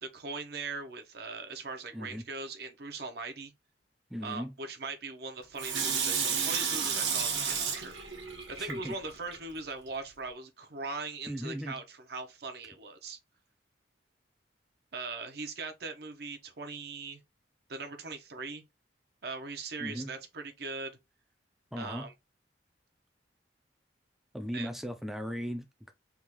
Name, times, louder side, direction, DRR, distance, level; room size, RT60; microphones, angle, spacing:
voice 1, 0.0-3.5 4.2-7.9 8.5-13.2 14.9-17.2 17.7-18.6 19.2-20.9 21.8-22.1 24.5-24.7, right 3 dB, 55° right, 0.6 m, -40 dB
voice 2, 1.9-2.2 4.1-4.5 8.6-8.9 11.3-11.8 19.8-20.1 21.7-22.1 24.3-25.9, equal, ahead, 0.3 m, -37 dB
Water tap faucet / Sink (filling or washing), 5.6-9.4 9.9-10.0, right 6 dB, 80° right, 1.1 m, -32 dB
3.5 x 2.3 x 2.9 m
head